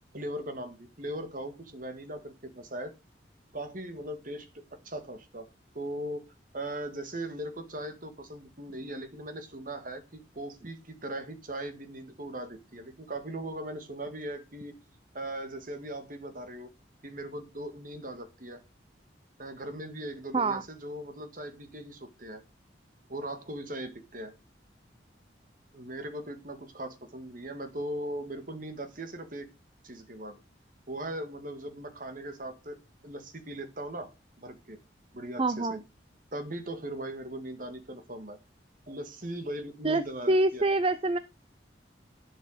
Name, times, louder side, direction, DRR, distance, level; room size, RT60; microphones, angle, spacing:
voice 1, 0.1-2.9 3.5-4.5 4.8-5.5 5.7-6.3 6.5-14.7 15.1-16.7 17.0-18.6 19.4-22.4 23.1-24.3 25.7-29.5 29.8-30.4 30.9-32.8 33.0-34.1 34.4-34.8 35.1-35.8 36.3-38.4 38.9-40.6, right 1 dB, 50° right, 8 dB, 1.9 m, -39 dB
voice 2, 35.4-35.8 39.8-41.2, right 2 dB, 30° right, 14 dB, 0.6 m, -26 dB
11.5 x 7.8 x 5.0 m, 0.28 s
head